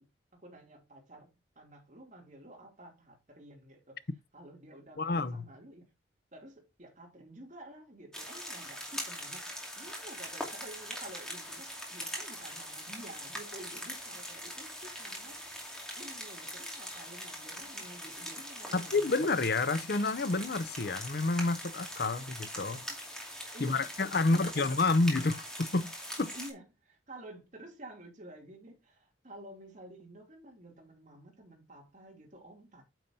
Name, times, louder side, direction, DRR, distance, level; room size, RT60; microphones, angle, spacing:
voice 1, 0.0-5.8 6.3-15.4 15.9-19.2 22.2-22.3 22.9-23.0 23.5-24.9 26.3-32.8, right 1 dB, 40° right, 2.9 m, -51 dB
voice 2, 5.0-5.5 18.7-22.9 23.6-25.9 26.2-26.3, left 3 dB, 55° left, 0.7 m, -29 dB
sound 1, 8.1-26.5, equal, 5° left, 2.4 m, -42 dB
9.0 x 6.9 x 2.8 m
head